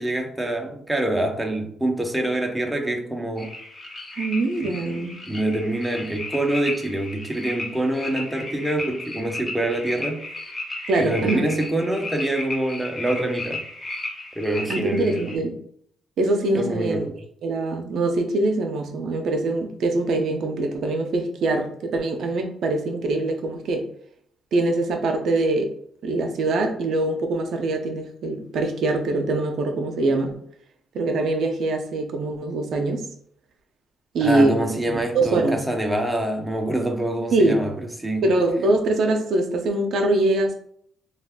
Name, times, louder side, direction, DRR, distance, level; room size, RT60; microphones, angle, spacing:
voice 1, 0.0-3.5 4.6-4.7 5.3-10.2 11.0-13.6 14.4-15.2 16.5-17.2 34.2-38.3, right 1 dB, 5° right, 0.5 m, -25 dB
sound 1, 3.4-15.4, left 2 dB, 30° left, 0.8 m, -34 dB
voice 2, 4.2-5.2 10.9-11.5 14.7-15.5 16.2-17.1 17.4-23.9 24.5-25.7 26.0-30.4 30.9-33.1 34.1-34.6 34.9-35.6 37.3-37.6 38.2-40.5, right 2 dB, 70° right, 0.5 m, -23 dB
2.4 x 2.3 x 3.4 m
cardioid pair, 90°, 0 cm